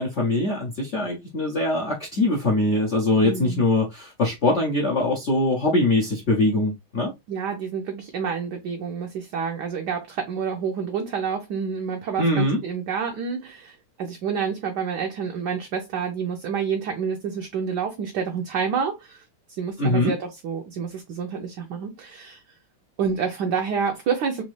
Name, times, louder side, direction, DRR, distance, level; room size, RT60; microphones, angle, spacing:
voice 1, 0.0-7.1 12.2-12.6 19.8-20.1, left 2 dB, 55° left, 0.8 m, -22 dB
voice 2, 3.2-3.6 7.3-19.2 19.6-22.4 23.0-24.4, right 6 dB, 65° right, 1.1 m, -28 dB
4.1 x 2.7 x 3.1 m
omnidirectional pair, 2.3 m